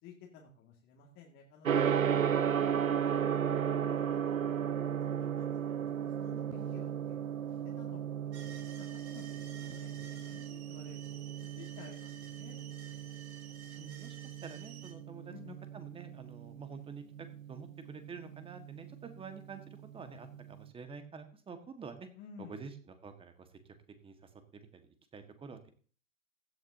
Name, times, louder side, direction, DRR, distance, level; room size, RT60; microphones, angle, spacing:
voice 1, 0.0-3.5 4.1-4.6 5.1-8.0 8.3-13.6 15.3-15.7 22.1-22.6, left 6 dB, 30° left, -1 dB, 2.3 m, -55 dB
Gong, 1.6-20.6, right 8 dB, 80° right, 1.0 m, -35 dB
sound 1, 8.3-14.9, right 8 dB, 55° right, 3.6 m, -53 dB
voice 2, 13.8-14.2 14.4-22.1 22.4-23.5 24.0-24.1 24.5-24.8 25.1-25.7, right 5 dB, 15° right, 7 dB, 1.6 m, -48 dB
16.0 x 12.0 x 2.8 m, 0.41 s
figure-of-eight pair, 110°, 40 cm